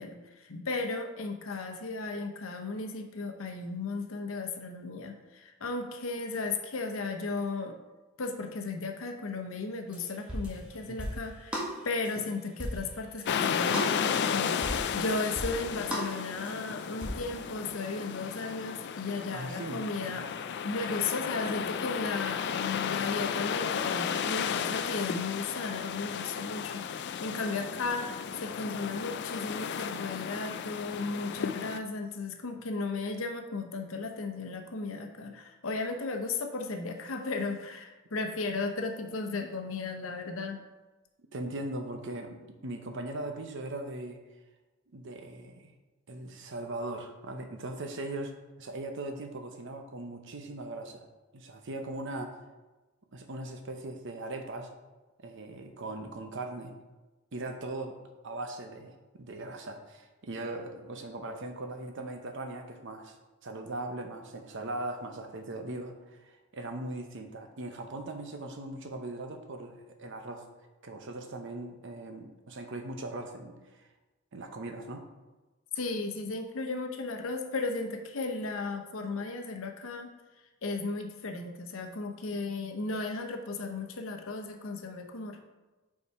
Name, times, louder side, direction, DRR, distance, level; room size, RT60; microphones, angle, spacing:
voice 1, 0.0-7.7 8.2-20.3 20.6-40.6 75.7-80.1 80.6-85.4, left 3 dB, 75° left, 4 dB, 0.8 m, -35 dB
sound 1, 9.9-10.0 10.3-10.6 11.0-11.2 11.5-11.7 12.0-12.2 12.6-12.9 13.2-13.3 13.7-13.9 14.3-14.4 14.6-14.9 15.4-15.6 15.9-16.1 16.4-16.6 17.0-17.1, equal, 5° right, 1.5 m, -35 dB
sound 2, 13.3-31.8, left 7 dB, 55° left, 0.3 m, -34 dB
voice 2, 19.3-19.8 20.1-20.2 41.3-44.2 44.9-45.7 46.1-51.1 51.3-52.4 53.1-54.7 55.2-56.7 57.3-58.0 58.2-63.2 63.4-70.4 70.8-73.8 74.3-75.1, right 2 dB, 60° right, 5 dB, 0.8 m, -39 dB
5.5 x 4.7 x 4.7 m, 1.2 s
head